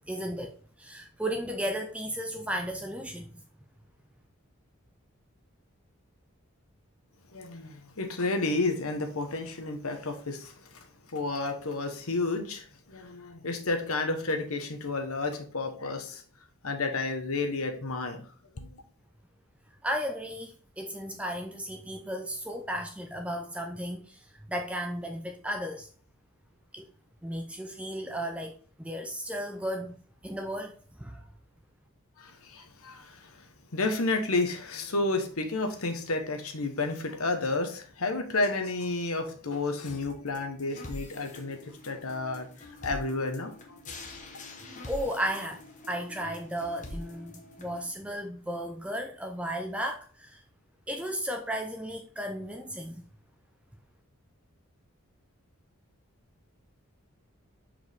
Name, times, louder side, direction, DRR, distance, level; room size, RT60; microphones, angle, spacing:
voice 1, 0.0-3.4 19.8-25.9 26.7-26.9 27.2-31.2 44.9-45.6 45.9-50.4 50.9-53.1, equal, 5° right, 3 dB, 0.4 m, -35 dB
voice 2, 7.3-10.8 11.1-16.2 16.6-18.3 18.6-18.8 32.2-33.4 33.7-41.6 41.8-42.5 42.8-43.8, left 3 dB, 80° left, 7 dB, 1.1 m, -31 dB
sound 1, 39.9-47.9, left 2 dB, 35° left, 1.0 m, -45 dB
6.2 x 4.8 x 3.5 m, 0.42 s
head